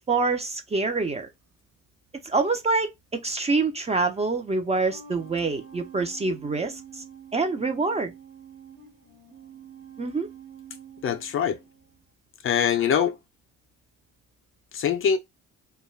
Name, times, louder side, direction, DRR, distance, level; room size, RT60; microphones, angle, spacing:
voice 1, 0.1-1.3 2.2-7.0 7.3-8.1 10.0-10.3, right 3 dB, 20° right, 0.4 m, -26 dB
sound 1, 1.8-1.9 4.6-12.0, right 7 dB, 70° right, 1.2 m, -47 dB
voice 2, 11.0-11.6 12.4-13.1 14.7-15.2, left 8 dB, 40° left, 0.4 m, -23 dB
2.3 x 2.2 x 3.1 m
cardioid pair, 90°, 34 cm